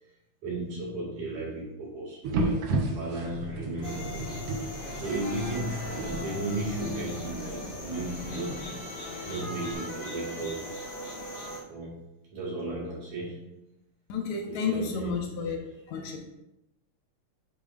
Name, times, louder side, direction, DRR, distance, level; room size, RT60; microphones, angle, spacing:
voice 1, 0.4-4.4 5.0-8.9 9.3-10.8 11.7-13.5 14.5-15.4, right 1 dB, 85° right, -5 dB, 3.7 m, -35 dB
sound 1, 2.2-9.7, right 2 dB, 65° right, 1.6 m, -35 dB
sound 2, 3.2-8.6, left 4 dB, 55° left, 1.7 m, -44 dB
sound 3, 3.8-11.6, equal, 35° left, 0.9 m, -39 dB
voice 2, 14.1-15.6 15.9-16.2, left 5 dB, 75° left, 2 dB, 2.3 m, -31 dB
10.0 x 5.0 x 2.5 m, 0.90 s
omnidirectional pair, 3.3 m